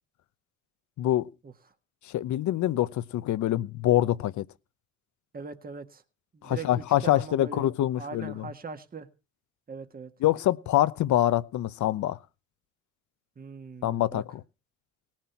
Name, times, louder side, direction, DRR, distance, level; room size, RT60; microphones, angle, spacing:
voice 1, 1.0-1.3 2.0-4.4 6.4-8.5 10.2-12.2 13.8-14.4, left 13 dB, 75° left, 0.8 m, -25 dB
voice 2, 5.3-6.0 6.3-7.7 8.0-9.1 9.7-10.1 13.4-14.2, right 4 dB, 30° right, 1.6 m, -41 dB
18.0 x 7.4 x 5.9 m
cardioid pair, 90°, 30 cm